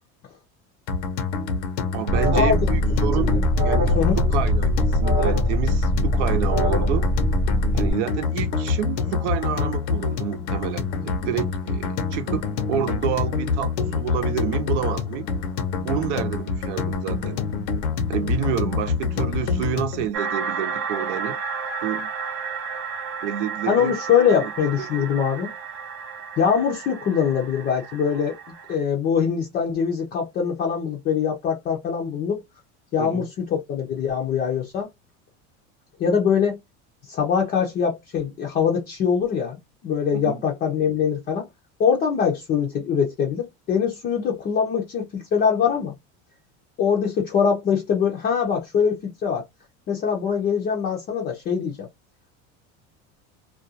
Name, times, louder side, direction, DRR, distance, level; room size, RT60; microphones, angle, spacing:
sound 1, 0.9-20.1, left 5 dB, 80° left, 0.7 m, -26 dB
voice 1, 1.9-3.4 3.6-3.9 4.3-7.1 7.7-15.3 15.8-17.4 18.1-21.4 21.8-22.1 23.2-23.9 24.3-24.5 24.8-24.9 33.0-33.2 40.1-40.4, right 9 dB, 85° right, 0.7 m, -29 dB
Alarm, 2.1-7.9, equal, 20° right, 0.7 m, -22 dB
sound 2, 20.1-28.7, right 6 dB, 55° right, 0.8 m, -32 dB
voice 2, 23.7-25.5 26.4-28.4 28.7-32.4 32.9-34.9 36.0-36.6 37.1-39.6 39.8-41.5 41.8-45.9 46.8-49.4 49.9-51.9, left 7 dB, 25° left, 0.5 m, -23 dB
2.4 x 2.2 x 2.7 m
cardioid pair, 160°, 34 cm